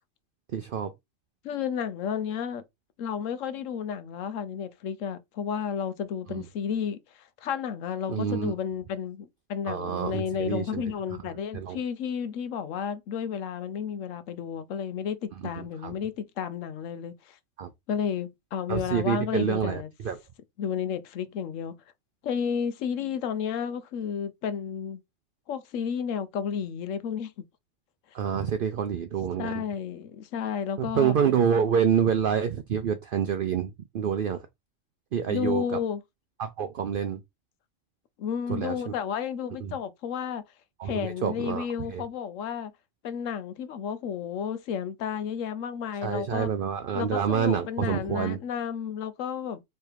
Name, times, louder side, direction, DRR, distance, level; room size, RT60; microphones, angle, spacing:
voice 1, 0.5-0.9 6.3-6.4 8.1-8.5 9.7-10.8 11.5-11.8 15.6-16.0 17.6-17.7 18.7-20.2 28.1-29.6 30.8-34.4 35.1-35.8 36.4-37.2 38.5-38.9 39.6-39.7 40.8-42.0 46.0-48.4, right 8 dB, 60° right, 0.6 m, -27 dB
voice 2, 1.4-2.6 3.0-17.4 17.9-19.9 20.6-21.8 22.2-25.0 25.5-27.5 29.4-31.2 35.2-36.0 38.2-40.4 40.8-42.7 43.0-46.5 46.9-49.6, left 7 dB, 85° left, 1.0 m, -32 dB
3.4 x 3.3 x 4.5 m
omnidirectional pair, 1.3 m